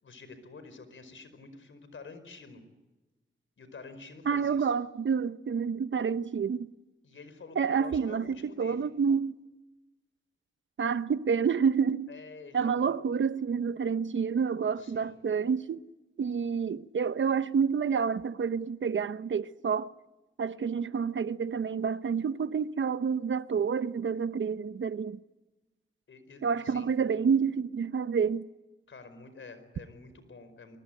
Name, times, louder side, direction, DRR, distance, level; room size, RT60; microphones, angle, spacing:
voice 1, 0.0-2.6 3.6-4.7 7.0-8.9 12.1-12.9 14.8-15.2 26.1-26.9 28.9-30.8, left 4 dB, 70° left, 5.0 m, -49 dB
voice 2, 4.3-6.7 7.6-9.3 10.8-12.1 12.5-15.8 16.2-19.9 20.4-25.2 26.4-28.5, right 6 dB, 65° right, 0.9 m, -28 dB
24.5 x 22.0 x 9.1 m
cardioid pair, 60°, 21 cm